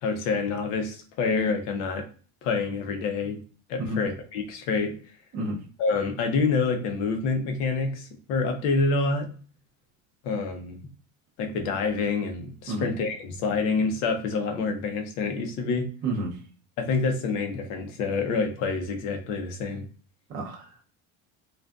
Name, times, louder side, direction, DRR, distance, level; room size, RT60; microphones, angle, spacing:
voice 1, 0.0-2.0 2.4-3.4 3.7-5.0 5.8-9.3 10.2-10.8 11.4-15.9 16.8-19.9, left 4 dB, 65° left, 5 dB, 0.7 m, -27 dB
voice 2, 16.0-16.4 20.3-20.9, right 1 dB, 30° right, -1 dB, 0.5 m, -30 dB
2.6 x 2.3 x 2.2 m, 0.41 s
cardioid pair, 175°, 32 cm